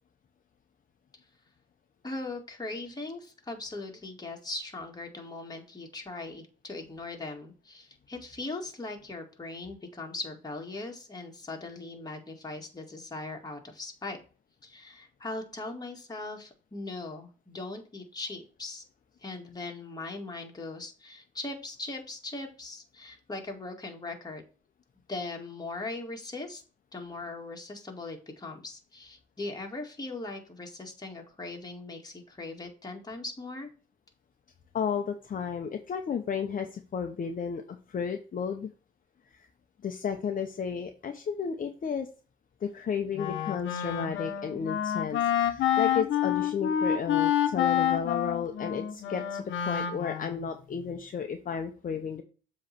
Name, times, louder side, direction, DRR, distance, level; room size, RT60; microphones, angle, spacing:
voice 1, 2.0-14.2 14.6-18.8 19.2-24.4 25.1-26.6 26.9-33.7, left 2 dB, 20° left, 1 dB, 2.0 m, -39 dB
voice 2, 34.7-38.7 39.3-39.5 39.8-42.1 42.6-52.2, left 6 dB, 45° left, 5 dB, 0.8 m, -33 dB
Wind instrument woodwind instrument, 43.2-50.5, left 10 dB, 75° left, 1.0 m, -28 dB
7.5 x 3.2 x 5.7 m, 0.37 s
cardioid pair, 90°, 20 cm